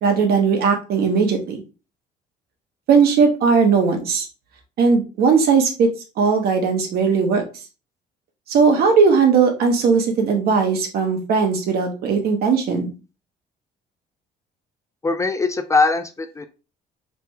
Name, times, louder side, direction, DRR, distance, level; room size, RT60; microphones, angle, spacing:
voice 1, 0.0-1.6 2.9-4.3 4.8-5.9 6.2-7.4 8.5-12.9, right 5 dB, 65° right, 3 dB, 1.0 m, -18 dB
voice 2, 15.0-16.5, left 3 dB, 20° left, 9 dB, 0.3 m, -21 dB
3.3 x 2.2 x 4.3 m, 0.32 s
cardioid pair, 110°, 17 cm